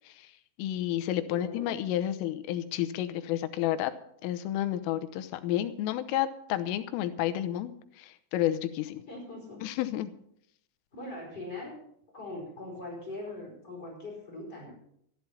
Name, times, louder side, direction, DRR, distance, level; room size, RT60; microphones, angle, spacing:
voice 1, 0.6-3.9 4.2-9.0 9.6-10.1, left 12 dB, 90° left, 10 dB, 3.4 m, -31 dB
voice 2, 1.3-1.7 9.1-9.6 10.9-11.8 12.1-14.7, left 2 dB, 20° left, -2 dB, 4.9 m, -41 dB
13.5 x 12.0 x 5.7 m, 0.71 s
omnidirectional pair, 5.7 m